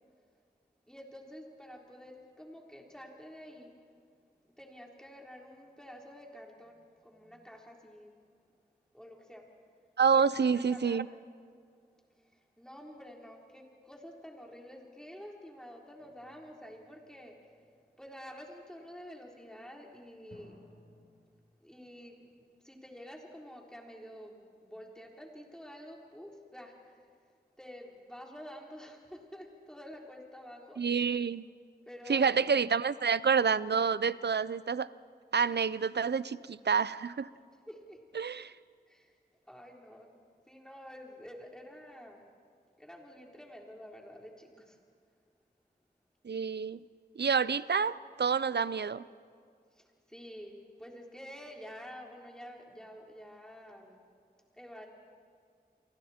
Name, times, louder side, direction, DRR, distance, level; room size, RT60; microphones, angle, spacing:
voice 1, 0.9-3.7 4.4-8.1 8.9-9.4 10.5-11.2 12.2-17.4 18.0-20.6 21.6-27.1 27.6-31.0 31.9-32.4 37.7-38.0 38.9-39.1 39.5-40.2 40.5-42.3 42.8-44.8 49.7-54.0 54.5-54.9, equal, 5° left, -1 dB, 3.8 m, -49 dB
voice 2, 10.0-11.1 30.8-31.4 32.1-34.9 35.3-37.3 38.1-38.5 46.2-46.8 47.2-49.0, right 6 dB, 90° right, 17 dB, 0.5 m, -28 dB
sound 1, 16.0-17.8 20.3-21.3, left 2 dB, 90° left, 3.6 m, -60 dB
29.5 x 24.0 x 4.4 m, 2.1 s
wide cardioid pair, 45°, 17 cm